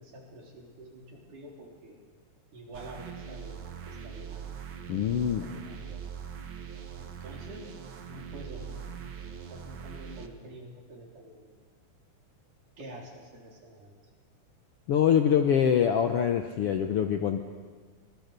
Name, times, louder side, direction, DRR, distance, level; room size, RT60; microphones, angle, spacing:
voice 1, 0.0-2.0 2.5-4.6 5.4-6.0 7.0-7.7 8.1-8.8 9.5-11.5 12.8-13.9, right 1 dB, 75° right, -2 dB, 5.4 m, -47 dB
sound 1, 2.7-10.3, right 7 dB, 50° right, 1.6 m, -42 dB
voice 2, 4.9-5.5 14.9-17.4, left 8 dB, 70° left, 6 dB, 1.4 m, -24 dB
24.5 x 20.0 x 6.8 m, 1.5 s
omnidirectional pair, 3.7 m